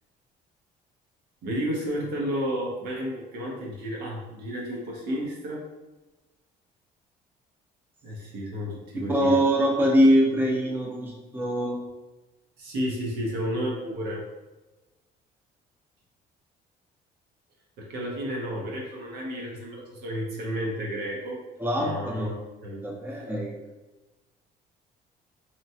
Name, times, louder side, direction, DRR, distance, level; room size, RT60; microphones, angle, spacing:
voice 1, 1.4-5.6 8.0-9.4 12.6-14.2 17.8-21.4 21.8-22.3 22.6-23.1, equal, 75° right, -2 dB, 0.8 m, -32 dB
voice 2, 8.9-11.8 21.6-22.4 22.8-23.5, equal, 10° right, -2 dB, 0.6 m, -23 dB
2.9 x 2.2 x 2.7 m, 1.1 s
cardioid pair, 110°, 17 cm